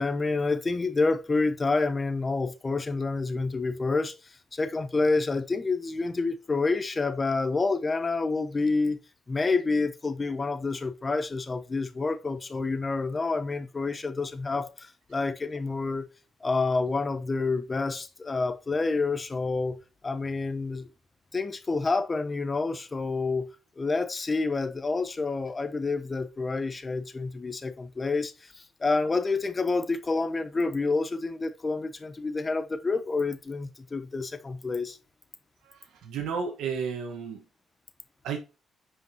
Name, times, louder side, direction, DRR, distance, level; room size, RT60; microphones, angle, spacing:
voice 1, 0.0-9.0 9.3-16.0 16.4-20.9 21.3-23.5 23.8-35.0, left 3 dB, 25° left, 1.0 m, -28 dB
voice 2, 36.0-37.4 38.2-38.4, right 6 dB, 85° right, 1.4 m, -32 dB
9.4 x 5.1 x 2.9 m
cardioid pair, 90°, 0 cm